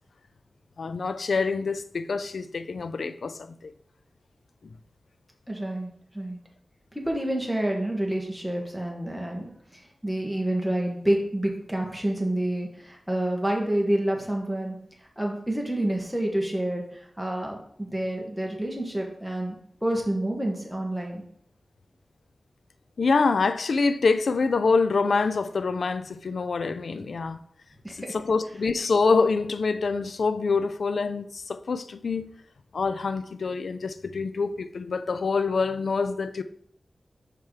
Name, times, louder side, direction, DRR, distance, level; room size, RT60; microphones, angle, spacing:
voice 1, 0.8-3.7 23.0-27.4 27.9-32.3 32.7-36.4, left 4 dB, 85° left, 0.4 m, -26 dB
voice 2, 5.5-6.4 6.9-14.8 15.2-19.5 19.8-21.2 27.8-28.2, right 1 dB, ahead, 1.6 m, -28 dB
5.8 x 4.6 x 4.9 m
wide cardioid pair, 80°, 0 cm